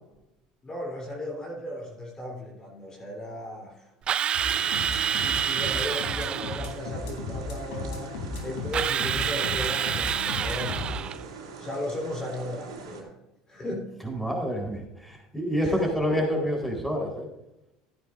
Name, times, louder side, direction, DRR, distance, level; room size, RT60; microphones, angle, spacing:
voice 1, 0.6-3.9 5.2-8.2 8.4-11.2 11.6-13.1 13.5-13.9 15.6-15.8, left 1 dB, 25° left, -2 dB, 3.4 m, -36 dB
Drill, 4.1-6.8 8.7-11.2, right 9 dB, 40° right, 0.3 m, -28 dB
sound 1, 4.3-10.9, left 3 dB, 75° left, 3.5 m, -35 dB
sound 2, 4.4-13.0, right 5 dB, 85° right, 2.7 m, -42 dB
voice 2, 14.0-17.3, equal, 5° left, 1 dB, 4.1 m, -28 dB
14.0 x 10.0 x 2.6 m, 0.91 s
hypercardioid pair, 80°, 3 cm